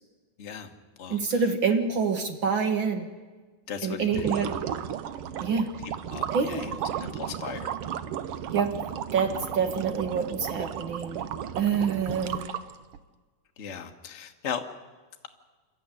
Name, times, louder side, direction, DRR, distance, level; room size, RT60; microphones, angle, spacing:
voice 1, 0.4-0.7 1.0-1.4 3.7-4.4 6.1-7.7 13.6-14.6, left 7 dB, 45° left, 5 dB, 0.8 m, -37 dB
voice 2, 1.1-3.1 3.8-4.5 5.4-5.7 6.3-6.8 8.5-8.7 9.1-11.2 11.6-12.6, right 5 dB, 50° right, 7 dB, 1.7 m, -27 dB
sound 1, 4.0-13.0, right 9 dB, 70° right, 1.4 m, -34 dB
27.5 x 13.0 x 9.7 m, 1.4 s
omnidirectional pair, 3.5 m